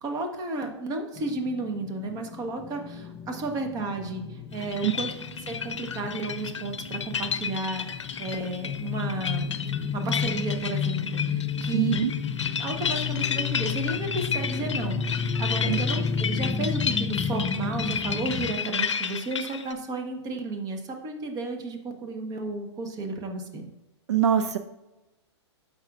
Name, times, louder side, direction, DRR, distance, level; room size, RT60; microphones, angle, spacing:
voice 1, 0.0-5.1 5.5-12.0 12.5-23.7, right 2 dB, 25° right, 4 dB, 1.2 m, -33 dB
sound 1, 1.2-18.5, left 6 dB, 25° left, 0.7 m, -32 dB
sound 2, 4.5-19.7, left 6 dB, 80° left, 0.6 m, -32 dB
voice 2, 11.7-12.1 15.7-15.8 24.1-24.6, right 9 dB, 70° right, 10 dB, 0.4 m, -23 dB
13.5 x 5.3 x 2.4 m, 1.0 s
hypercardioid pair, 115°, 15 cm